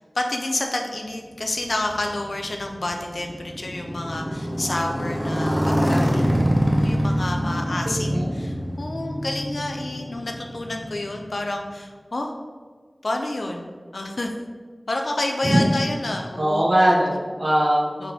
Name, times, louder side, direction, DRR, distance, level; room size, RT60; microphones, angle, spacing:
voice 1, 0.0-12.3 13.0-14.3 14.9-16.7 18.0-18.1, left 2 dB, 75° left, 2 dB, 0.3 m, -29 dB
Motorcycle, 1.6-11.5, equal, 5° right, 0.5 m, -25 dB
voice 2, 7.4-8.3 15.4-15.7 16.4-17.9, right 1 dB, 60° right, -3 dB, 0.5 m, -21 dB
4.0 x 3.5 x 2.7 m, 1.5 s
wide cardioid pair, 40°, 0 cm